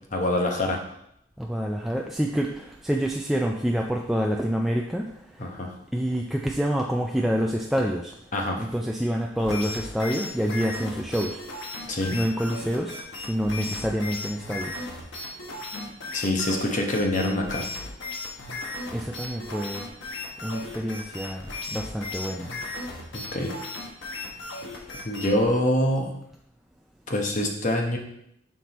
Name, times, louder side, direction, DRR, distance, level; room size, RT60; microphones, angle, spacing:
voice 1, 0.1-0.8 5.4-5.7 8.3-8.6 11.9-12.1 15.7-15.9 16.1-17.7 23.1-23.5 25.0-26.2 27.1-28.0, left 1 dB, 40° left, 2 dB, 0.9 m, -25 dB
voice 2, 1.4-5.1 5.9-8.1 8.6-11.4 12.1-14.7 18.9-19.9 20.4-22.5, equal, ahead, 0 dB, 0.3 m, -27 dB
sound 1, 9.4-25.5, left 2 dB, 75° left, 1.3 m, -36 dB
6.0 x 4.7 x 4.0 m, 0.75 s
head